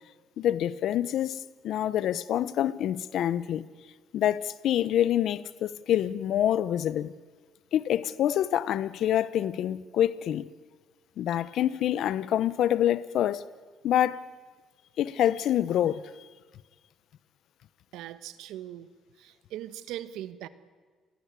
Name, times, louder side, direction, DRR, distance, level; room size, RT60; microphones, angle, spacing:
voice 1, 0.4-3.6 4.1-7.1 7.7-10.5 11.2-13.4 13.8-14.2 15.0-16.0, left 11 dB, 70° left, 1.0 m, -26 dB
voice 2, 17.9-18.9 19.2-20.5, right 12 dB, 85° right, 1.3 m, -40 dB
29.0 x 22.0 x 8.4 m
cardioid pair, 85°, 0 cm